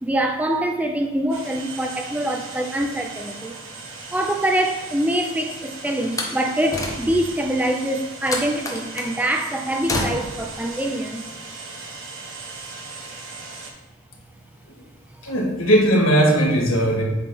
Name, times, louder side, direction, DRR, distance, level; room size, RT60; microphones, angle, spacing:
voice 1, 0.0-3.5 4.1-11.2, right 1 dB, 5° right, 3 dB, 0.4 m, -24 dB
sound 1, 1.3-13.7, right 3 dB, 65° right, 1.6 m, -38 dB
Slam, 6.0-7.4 8.3-9.2 9.9-10.5, left 1 dB, 15° left, 0.9 m, -29 dB
voice 2, 15.2-17.0, right 1 dB, 65° left, -1 dB, 1.7 m, -18 dB
8.1 x 3.9 x 5.6 m, 1.2 s
head